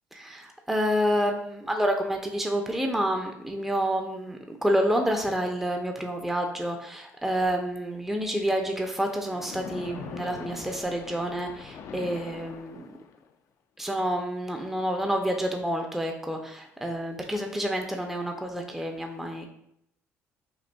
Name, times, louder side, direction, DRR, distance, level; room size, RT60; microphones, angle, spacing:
voice 1, 0.1-12.9 13.8-19.5, equal, 5° right, 3 dB, 0.4 m, -28 dB
Splash splatter, 9.3-13.3, left 6 dB, 65° left, 0.3 m, -42 dB
5.1 x 2.5 x 2.2 m, 0.76 s
supercardioid pair, 80°, 5 cm